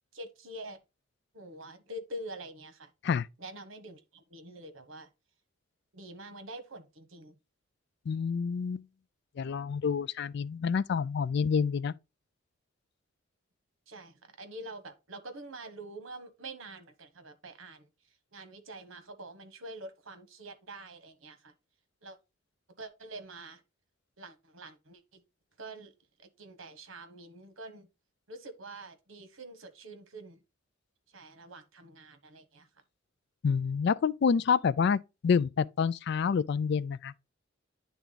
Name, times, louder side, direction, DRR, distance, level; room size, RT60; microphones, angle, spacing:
voice 1, 0.1-0.8 1.3-2.9 3.4-5.1 5.9-7.3 13.9-17.9 18.3-21.5 22.0-22.2 22.8-23.6 24.2-25.2 25.6-25.9 26.2-27.9 28.3-30.4 31.1-32.7, right 1 dB, 75° right, 1.2 m, -46 dB
voice 2, 8.1-8.8 9.4-11.9 33.4-37.1, left 6 dB, 55° left, 0.3 m, -28 dB
10.0 x 3.5 x 3.9 m
head